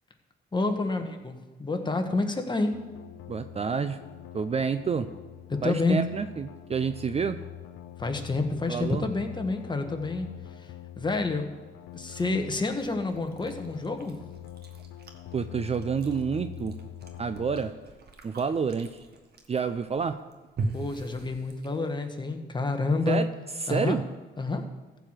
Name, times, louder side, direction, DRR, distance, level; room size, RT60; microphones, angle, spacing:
voice 1, 0.5-2.7 5.5-6.0 8.0-10.3 10.6-11.5 11.9-14.2 20.7-23.2 23.7-24.0 24.4-24.6, left 3 dB, 20° left, 5 dB, 1.4 m, -29 dB
sound 1, 2.7-17.7, left 12 dB, 85° left, 0.8 m, -44 dB
voice 2, 3.3-4.0 4.3-5.1 5.6-7.4 8.7-9.1 15.3-16.8 17.2-17.7 18.2-18.9 19.5-20.2 23.1-23.3 23.6-24.0, right 6 dB, 30° right, 10 dB, 0.5 m, -28 dB
Chewing mastication, 11.9-22.1, right 3 dB, 55° right, 1.6 m, -42 dB
14.5 x 4.9 x 7.5 m, 1.3 s
cardioid pair, 90°, 20 cm